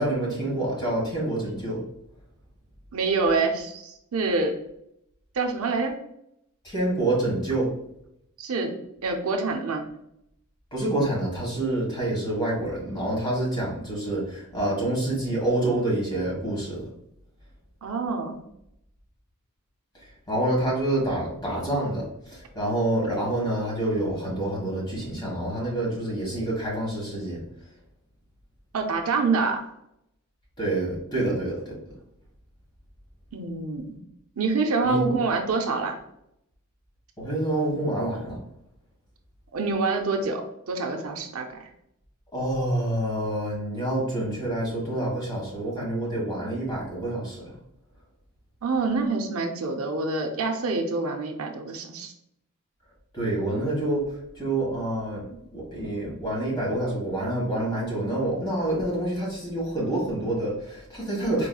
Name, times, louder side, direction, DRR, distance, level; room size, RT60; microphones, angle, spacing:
voice 1, 0.0-1.8 6.6-7.7 10.7-16.8 20.3-27.4 30.6-31.7 34.8-35.1 37.2-38.4 42.3-47.5 53.1-54.1 54.3-61.5, right 1 dB, 20° left, -4 dB, 1.5 m, -27 dB
voice 2, 2.9-4.6 5.4-6.0 8.4-8.7 9.0-9.8 17.8-18.4 28.7-29.6 33.3-34.0 34.4-36.0 39.5-41.5 48.6-52.1, right 3 dB, 70° right, 3 dB, 0.5 m, -26 dB
4.5 x 3.0 x 2.3 m, 0.78 s
head